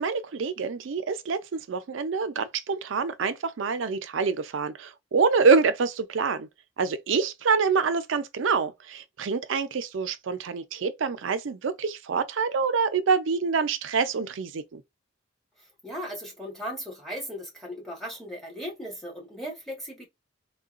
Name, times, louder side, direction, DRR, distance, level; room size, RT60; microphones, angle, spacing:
voice 1, 0.0-6.5 6.8-14.8, right 5 dB, 80° right, 0.5 m, -26 dB
voice 2, 15.8-20.1, equal, ahead, 1.1 m, -37 dB
3.7 x 2.2 x 2.4 m
head